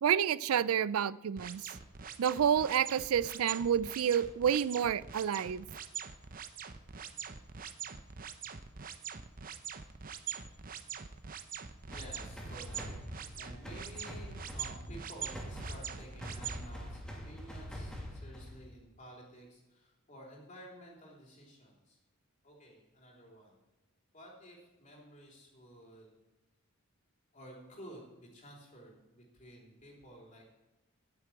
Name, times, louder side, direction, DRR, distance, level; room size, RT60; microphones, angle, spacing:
voice 1, 0.0-1.6 2.2-5.6, right 8 dB, 90° right, 19 dB, 0.4 m, -29 dB
sound 1, 1.4-16.7, right 7 dB, 40° right, 0.7 m, -43 dB
voice 2, 11.8-13.0 13.4-22.0 22.4-23.6 24.1-26.1 27.3-30.5, equal, 35° left, -2 dB, 3.7 m, -52 dB
sound 2, 11.9-18.7, equal, 5° left, 2.3 m, -44 dB
9.7 x 8.2 x 8.8 m, 1.0 s
head